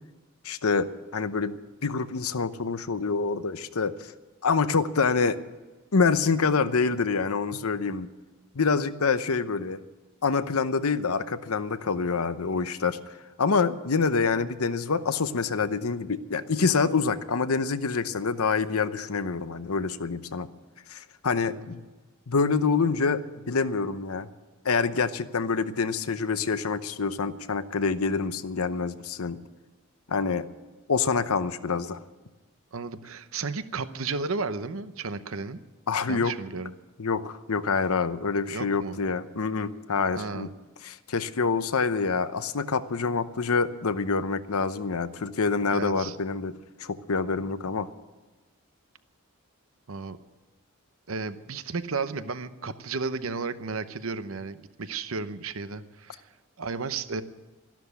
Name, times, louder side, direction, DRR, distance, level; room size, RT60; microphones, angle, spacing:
voice 1, 0.4-1.6 1.8-4.1 4.4-5.4 5.9-8.1 8.5-9.8 10.2-20.5 20.9-21.8 22.3-24.3 24.6-29.4 30.1-30.5 30.9-32.0 35.9-36.3 37.0-40.5 40.8-47.9, left 4 dB, 85° left, 12 dB, 0.8 m, -26 dB
voice 2, 32.7-35.6 36.1-36.7 38.5-39.0 40.2-40.5 45.7-46.2 49.9-50.2 51.1-56.2 56.6-57.2, right 4 dB, 70° right, 12 dB, 0.8 m, -33 dB
13.5 x 12.0 x 8.2 m, 1.2 s
head